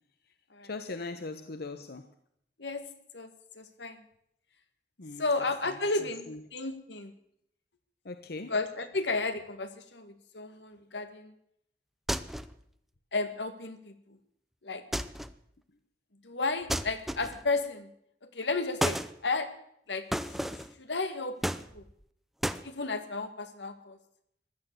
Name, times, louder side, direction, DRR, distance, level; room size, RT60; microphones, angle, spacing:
voice 1, 0.6-2.1 5.0-5.3 6.3-6.4 8.0-8.5, left 3 dB, 65° left, 9 dB, 1.0 m, -39 dB
voice 2, 3.6-4.0 5.2-7.1 8.5-11.3 13.1-14.2 14.6-14.8 16.2-17.9 18.2-19.5 19.9-21.4 21.7-21.8 22.6-24.0, left 3 dB, 85° left, 9 dB, 1.9 m, -33 dB
sound 1, 12.1-12.6 14.9-15.4 16.7-17.5 18.8-19.1 20.1-20.7 21.4-22.0 22.4-22.7, equal, ahead, 0.6 m, -32 dB
15.5 x 11.5 x 8.1 m, 0.72 s
head